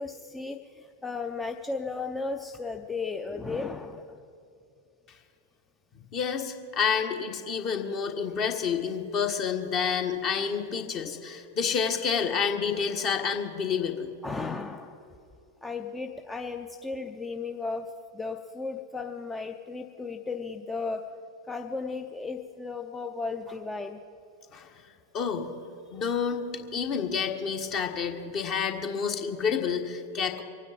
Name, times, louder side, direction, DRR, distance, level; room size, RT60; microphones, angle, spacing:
voice 1, 0.0-4.2 11.0-11.1 14.2-15.1 15.6-21.1 21.4-24.0, left 4 dB, 10° left, 4 dB, 0.6 m, -35 dB
voice 2, 6.1-14.1 24.5-24.7 25.1-25.5 25.9-30.4, left 6 dB, 35° left, 4 dB, 1.5 m, -29 dB
24.5 x 9.5 x 5.1 m, 2.7 s
figure-of-eight pair, 90°, 0 cm